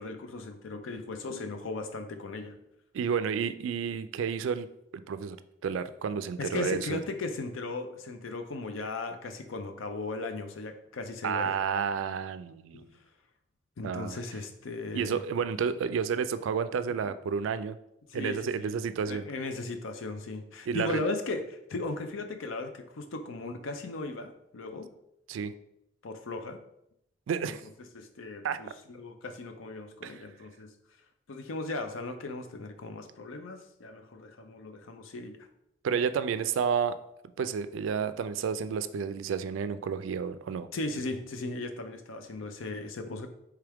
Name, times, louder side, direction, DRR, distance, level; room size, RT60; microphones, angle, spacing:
voice 1, 0.0-2.6 6.4-11.6 12.7-12.9 13.8-15.2 17.0-17.1 18.1-18.7 19.1-24.9 26.0-26.6 27.4-27.5 27.9-30.7 31.3-35.4 40.7-43.3, left 3 dB, 85° left, 7 dB, 0.5 m, -37 dB
voice 2, 2.9-4.7 5.1-5.4 5.6-7.0 11.2-12.9 13.8-14.2 14.9-17.8 18.1-19.3 20.7-21.0 25.3-25.5 27.3-27.6 28.4-28.6 30.0-30.2 35.8-37.0 37.4-40.7, right 6 dB, 80° right, 13 dB, 0.3 m, -30 dB
4.7 x 3.3 x 3.4 m, 0.80 s
head